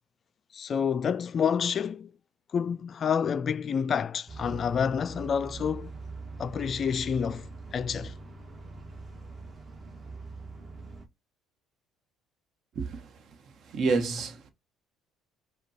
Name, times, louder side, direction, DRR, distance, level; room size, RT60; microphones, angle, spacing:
voice 1, 0.5-2.1 2.5-5.9 6.4-8.1, left 7 dB, 40° left, 0.3 m, -28 dB
sound 1, 4.3-11.1, right 3 dB, 30° right, 1.3 m, -43 dB
voice 2, 12.7-13.1 13.6-14.5, right 4 dB, 55° right, 1.1 m, -29 dB
5.0 x 2.3 x 4.2 m
supercardioid pair, 95°, 0 cm